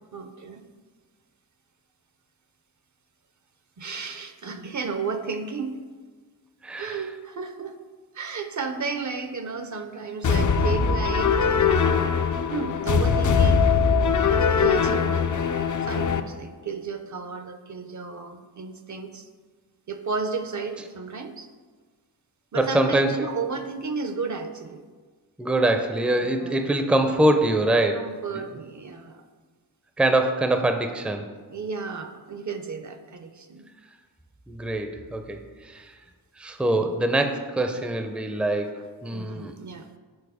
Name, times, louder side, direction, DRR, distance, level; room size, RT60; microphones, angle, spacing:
voice 1, 0.1-0.7 3.8-5.8 6.7-7.8 8.1-11.8 12.5-15.3 15.8-19.3 19.9-21.5 22.5-24.8 26.3-26.6 27.9-29.2 31.5-33.7 38.7-39.9, right 5 dB, 50° right, 8 dB, 0.6 m, -33 dB
voice 2, 6.6-7.0 22.6-23.1 25.4-28.0 30.0-31.2 34.5-35.4 35.7-35.8 36.4-39.5, right 1 dB, 5° right, 6 dB, 0.5 m, -23 dB
sound 1, 10.2-16.2, left 6 dB, 50° left, 0.5 m, -21 dB
7.1 x 4.2 x 4.9 m, 1.5 s
wide cardioid pair, 85°, 39 cm